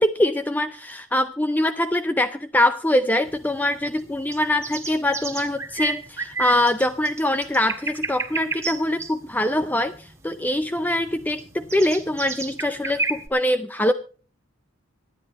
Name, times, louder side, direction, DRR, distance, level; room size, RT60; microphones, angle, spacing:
voice 1, 0.0-13.9, left 1 dB, 10° left, 10 dB, 0.5 m, -23 dB
sound 1, 3.3-13.3, right 4 dB, 15° right, 1.7 m, -32 dB
25.5 x 10.0 x 3.0 m, 0.39 s
head